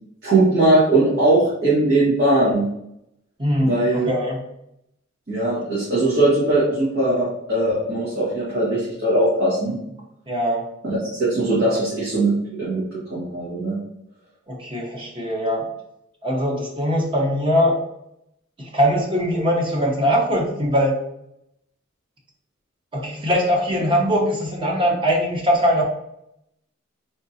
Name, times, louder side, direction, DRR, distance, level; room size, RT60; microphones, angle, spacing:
voice 1, 0.2-2.7 3.6-4.1 5.3-9.8 10.8-13.8, right 2 dB, 55° right, -10 dB, 1.6 m, -20 dB
voice 2, 3.4-4.4 10.3-10.7 14.5-15.7 16.2-17.8 18.6-21.0 22.9-25.8, equal, 25° right, -1 dB, 0.9 m, -21 dB
3.7 x 3.7 x 2.7 m, 0.79 s
head